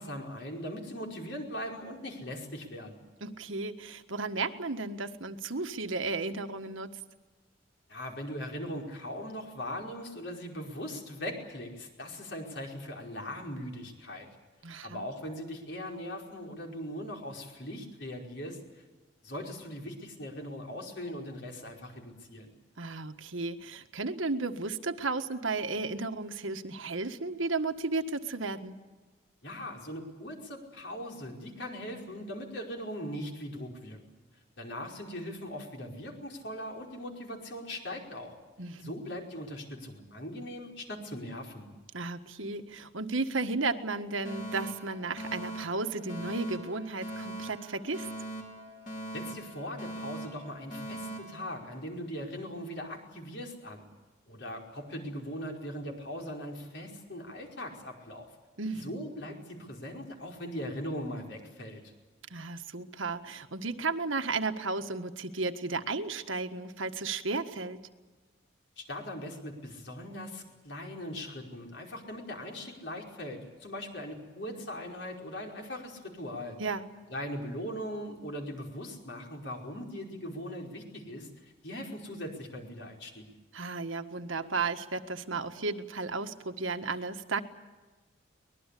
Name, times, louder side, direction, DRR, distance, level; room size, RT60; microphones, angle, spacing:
voice 1, 0.0-3.0 7.9-14.3 14.8-18.8 19.2-22.5 29.4-34.0 34.6-38.3 38.8-41.7 49.1-53.9 54.3-58.3 58.8-61.8 68.8-76.6 77.1-83.3, equal, 60° left, 1 dB, 5.1 m, -40 dB
voice 2, 3.2-7.0 14.6-15.0 22.8-28.8 38.6-38.9 41.9-48.1 58.6-59.0 62.3-67.8 76.6-76.9 83.5-87.4, right 3 dB, 80° right, 7 dB, 1.6 m, -34 dB
Alarm, 44.2-52.3, right 1 dB, 40° left, 4.5 m, -42 dB
24.0 x 20.5 x 8.5 m, 1.2 s
head